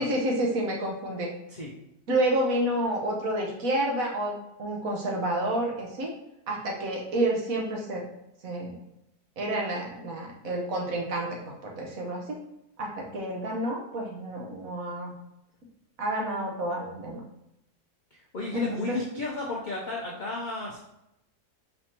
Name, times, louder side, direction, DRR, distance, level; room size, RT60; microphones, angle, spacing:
voice 1, 0.0-1.3 2.1-4.3 4.6-6.1 6.5-8.0 8.4-8.7 9.4-12.4 12.8-15.1 16.0-17.2 18.5-19.0, right 1 dB, 65° right, -1 dB, 1.3 m, -29 dB
voice 2, 18.1-20.8, left 2 dB, 70° left, -2 dB, 0.4 m, -33 dB
5.0 x 3.4 x 2.8 m, 0.84 s
omnidirectional pair, 1.6 m